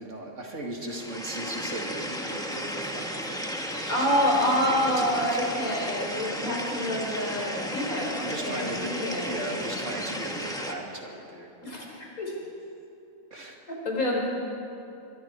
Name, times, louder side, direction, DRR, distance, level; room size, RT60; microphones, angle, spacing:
voice 1, 0.0-4.1 4.3-6.6 7.4-7.5 8.2-11.6 13.3-13.6, right 1 dB, 60° right, 0 dB, 2.9 m, -38 dB
sound 1, 0.8-10.7, equal, 5° left, 1.6 m, -34 dB
voice 2, 3.9-9.6 11.6-12.3 13.7-14.3, equal, 75° left, -2 dB, 5.2 m, -27 dB
25.5 x 23.0 x 4.8 m, 2.8 s
omnidirectional pair, 1.5 m